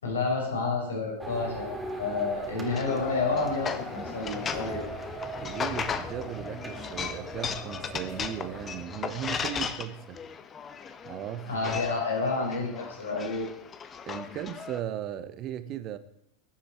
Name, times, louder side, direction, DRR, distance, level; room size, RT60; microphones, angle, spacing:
voice 1, 0.0-4.8 11.5-13.5, left 3 dB, 65° left, 6.5 m, -30 dB
sound 1, 1.2-8.8, right 1 dB, 5° right, 3.3 m, -40 dB
voice 2, 2.1-3.0 5.4-10.2 11.0-11.5 14.1-16.0, right 11 dB, 35° right, 1.4 m, -37 dB
sound 2, 2.6-14.8, left 6 dB, 25° left, 1.3 m, -37 dB
21.5 x 12.0 x 4.7 m
figure-of-eight pair, 90°, 0 cm